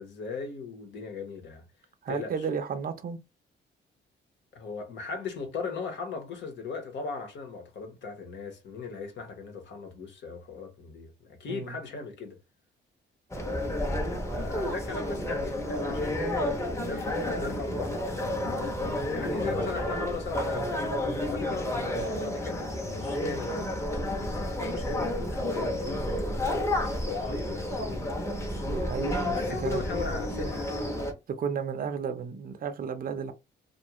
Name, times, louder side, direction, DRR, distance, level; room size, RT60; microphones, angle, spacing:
voice 1, 0.0-1.6 2.1-2.4 4.5-12.4 13.4-13.8 14.3-21.0 21.3-28.8 29.0-30.8, left 4 dB, 65° left, 1.1 m, -38 dB
voice 2, 2.0-3.2 11.5-11.8 28.6-29.4 29.6-29.8 31.3-33.3, right 6 dB, 45° right, 0.6 m, -33 dB
sound 1, 13.3-31.1, left 1 dB, 15° left, 0.8 m, -31 dB
2.4 x 2.3 x 2.9 m
cardioid pair, 90°, 20 cm